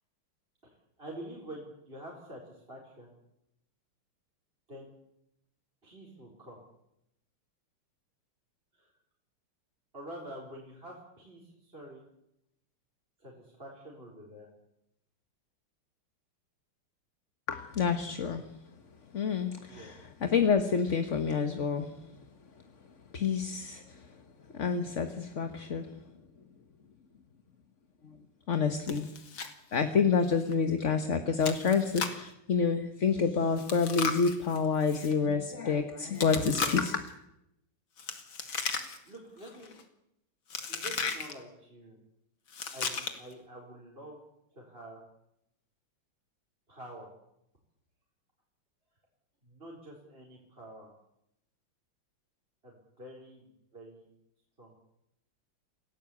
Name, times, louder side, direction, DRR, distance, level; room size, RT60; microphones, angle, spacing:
voice 1, 0.6-3.2 4.7-4.9 5.8-6.6 8.7-8.9 9.9-12.0 13.2-14.5 19.6-19.9 39.0-39.7 40.7-42.0 42.7-44.2 44.5-45.0 46.7-47.1 49.4-50.9 52.6-54.1 54.6-54.8, right 1 dB, 25° right, -3 dB, 4.6 m, -47 dB
voice 2, 17.5-18.4 19.1-21.9 23.1-24.0 24.5-25.9 28.5-29.1 29.7-37.0, left 5 dB, 40° left, 8 dB, 1.5 m, -28 dB
Chewing mastication, 28.9-29.5 29.8-29.9 30.4-30.5 31.4-32.3 33.6-35.1 36.2-37.1 38.0-39.2 39.4-39.8 40.5-41.3 42.5-43.3, left 5 dB, 65° left, 3.0 m, -35 dB
28.0 x 18.0 x 8.6 m, 0.83 s
omnidirectional pair, 2.3 m